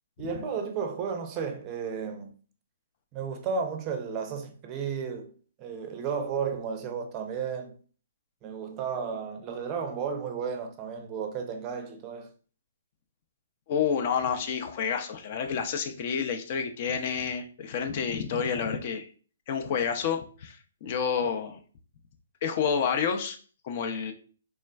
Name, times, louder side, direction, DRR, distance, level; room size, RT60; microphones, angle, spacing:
voice 1, 0.2-2.3 3.1-5.3 5.6-7.8 8.4-12.3, right 6 dB, 30° right, 0.5 m, -33 dB
voice 2, 13.7-19.1 19.5-21.6 22.4-23.4 23.6-24.1, left 7 dB, 45° left, 0.4 m, -29 dB
3.3 x 2.1 x 2.3 m
figure-of-eight pair, 130°, 0 cm